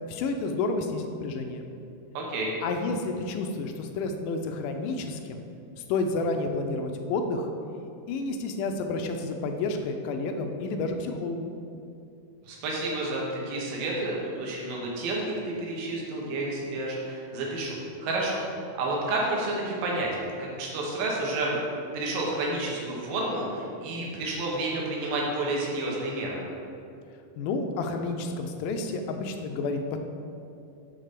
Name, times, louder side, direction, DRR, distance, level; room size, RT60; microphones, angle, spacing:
voice 1, 0.1-1.7 2.6-5.4 5.9-7.5 8.1-11.5 27.4-30.0, left 3 dB, 80° left, 5 dB, 2.2 m, -30 dB
voice 2, 2.1-2.5 12.4-20.1 20.4-21.6 21.9-26.4, right 2 dB, 80° right, -3 dB, 2.9 m, -30 dB
7.9 x 3.8 x 6.6 m, 2.6 s
omnidirectional pair, 3.9 m